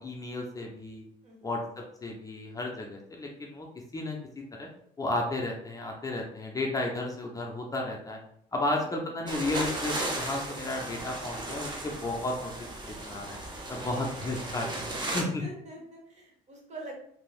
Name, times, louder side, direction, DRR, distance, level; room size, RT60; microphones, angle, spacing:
voice 1, 0.0-1.0 1.4-3.7 3.9-4.7 5.0-8.2 8.5-12.5 12.9-13.4 13.7-14.7 15.1-15.4, left 2 dB, 20° left, 0 dB, 0.5 m, -33 dB
voice 2, 1.2-1.6 8.6-9.3 15.1-16.9, right 2 dB, 40° right, -1 dB, 1.0 m, -46 dB
sound 1, 9.3-15.2, right 1 dB, 25° right, 0.7 m, -36 dB
3.2 x 2.6 x 2.4 m, 0.68 s
cardioid pair, 110°, 17 cm